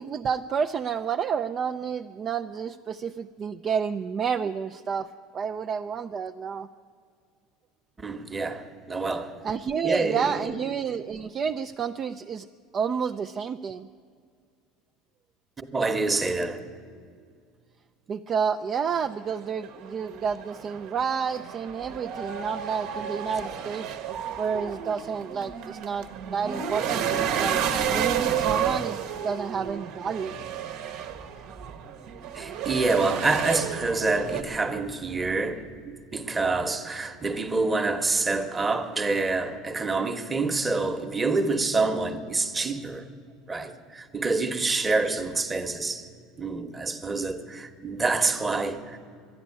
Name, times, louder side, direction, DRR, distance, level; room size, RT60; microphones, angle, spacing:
voice 1, 0.0-6.7 9.4-12.5 12.7-13.9 18.1-23.9 24.4-27.6 27.9-30.4, right 6 dB, 35° right, 0.4 m, -30 dB
voice 2, 8.0-9.3 9.8-10.5 15.6-16.6 32.3-43.1 43.5-46.1 46.4-49.0, right 3 dB, 15° right, 1.1 m, -27 dB
sound 1, 18.9-34.4, right 8 dB, 65° right, 1.1 m, -31 dB
11.5 x 10.5 x 9.7 m
supercardioid pair, 120°, 0 cm